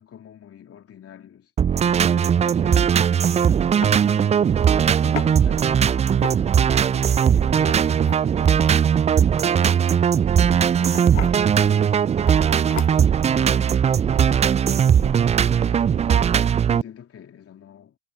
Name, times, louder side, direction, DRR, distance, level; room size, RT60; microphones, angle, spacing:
voice 1, 0.0-1.5 2.1-4.6 5.0-8.8 9.4-10.2 10.8-11.9 12.6-16.3 16.7-18.0, left 9 dB, 40° left, 3.3 m, -44 dB
sound 1, 1.6-16.8, right 8 dB, 20° right, 0.4 m, -19 dB
sound 2, 3.1-3.3 3.8-4.0 5.2-5.3 6.1-6.7 7.5-8.3 9.9-10.2 10.9-11.4 12.3-12.4 12.7-13.2, left 10 dB, 85° left, 0.9 m, -34 dB
figure-of-eight pair, 60°, 37 cm